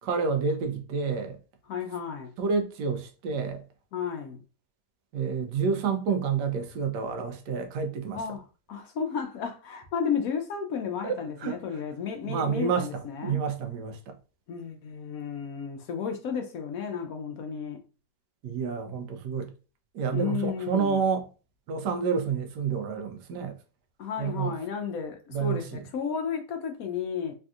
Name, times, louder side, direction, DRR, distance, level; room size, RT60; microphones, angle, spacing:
voice 1, 0.0-1.4 2.4-3.6 5.1-8.2 11.0-11.6 12.2-14.2 18.4-19.5 19.9-21.3 21.7-23.6 24.2-24.5 25.3-25.8, right 6 dB, 80° right, 1.2 m, -29 dB
voice 2, 1.7-2.3 3.9-4.4 8.1-8.4 8.7-13.4 14.5-17.8 20.1-21.0 24.0-27.4, left 6 dB, 70° left, 0.9 m, -33 dB
3.4 x 2.6 x 2.3 m
omnidirectional pair, 1.8 m